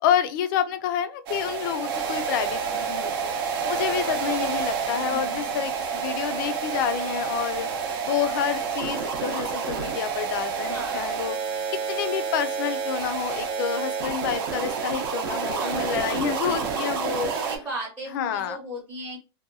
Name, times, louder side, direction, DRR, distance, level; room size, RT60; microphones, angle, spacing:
voice 1, 0.0-3.3 3.6-7.7 8.0-11.4 11.9-17.6 18.1-18.6, left 9 dB, 50° left, 0.4 m, -28 dB
sound 1, 1.3-17.6, right 6 dB, 55° right, 0.6 m, -29 dB
voice 2, 5.0-5.6 10.7-11.1 11.5-11.8 15.6-16.2 17.0-19.2, right 1 dB, 10° right, 0.7 m, -38 dB
2.7 x 2.2 x 2.5 m
supercardioid pair, 145°, 14 cm